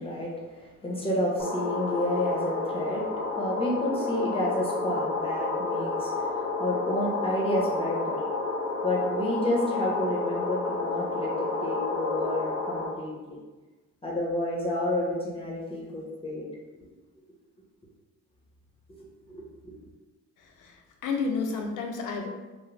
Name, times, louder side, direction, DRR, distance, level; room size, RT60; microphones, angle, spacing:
voice 1, 0.0-3.0 3.3-8.2 8.8-13.4 14.0-16.5 19.0-19.7, left 1 dB, 20° left, -4 dB, 0.7 m, -30 dB
sound 1, 1.4-12.9, left 3 dB, 20° right, 0.8 m, -30 dB
voice 2, 20.4-22.3, left 4 dB, 80° left, 2 dB, 0.5 m, -31 dB
2.4 x 2.1 x 3.1 m, 1.2 s
cardioid pair, 90°, 30 cm